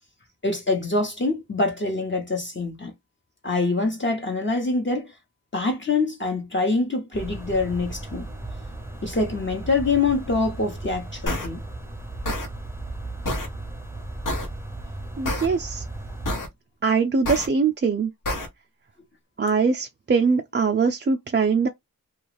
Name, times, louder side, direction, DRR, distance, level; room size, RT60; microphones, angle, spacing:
voice 1, 0.4-2.9 3.4-5.1 5.5-8.3 9.0-11.6, left 3 dB, 35° left, 0.8 m, -25 dB
sound 1, 7.1-16.3, right 2 dB, 5° right, 0.7 m, -36 dB
sound 2, 11.3-11.5 12.2-12.5 13.2-13.5 14.2-14.5 15.2-15.5 16.3-16.5 17.3-17.5 18.3-18.5, left 1 dB, 65° left, 0.9 m, -27 dB
voice 2, 15.2-15.8 16.8-18.1 19.4-21.7, right 5 dB, 35° right, 0.4 m, -22 dB
2.4 x 2.3 x 3.1 m
cardioid pair, 50°, 35 cm